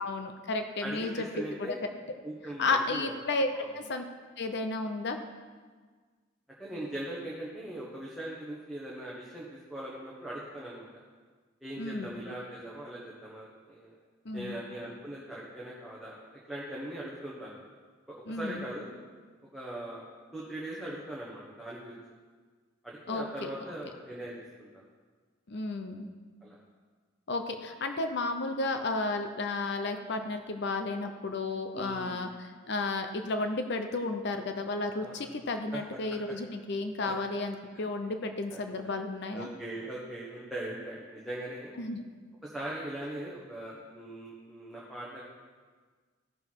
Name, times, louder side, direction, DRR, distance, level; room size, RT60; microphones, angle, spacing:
voice 1, 0.0-1.3 1.6-1.8 2.6-3.5 3.7-4.0 4.4-5.2 11.8-12.2 14.2-14.6 18.3-18.7 23.1-23.5 25.5-26.1 27.3-39.5 41.8-42.0, left 3 dB, 60° left, 6 dB, 0.7 m, -33 dB
voice 2, 0.8-1.8 2.2-3.1 3.5-3.7 6.6-10.9 11.6-13.9 14.3-16.2 16.5-17.5 18.1-18.9 19.5-20.1 20.3-21.9 22.8-24.8 26.4-26.6 31.7-32.3 35.0-35.3 35.7-35.8 37.0-37.1 38.5-38.6 39.3-41.7 42.4-45.2, right 1 dB, ahead, -7 dB, 1.3 m, -40 dB
15.0 x 6.7 x 4.7 m, 1.5 s
head